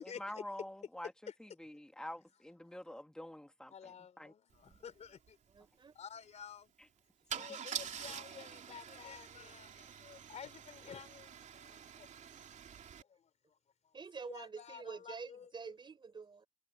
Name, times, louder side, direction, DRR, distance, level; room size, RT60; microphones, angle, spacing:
voice 1, 0.0-4.3 4.7-4.8 6.8-6.9 7.4-7.6, left 1 dB, 5° left, 1.5 m, -48 dB
voice 2, 3.7-4.4 4.8-5.2 6.0-6.7 7.3-11.3 11.6-12.1 14.2-15.5, left 7 dB, 40° left, 3.4 m, -51 dB
Car / Engine starting / Idling, 4.7-4.8 5.1-5.3 7.3-13.0, right 8 dB, 45° right, 3.3 m, -46 dB
voice 3, 5.5-5.9 13.9-16.5, right 5 dB, 30° right, 4.7 m, -47 dB
cardioid pair, 110°, 17 cm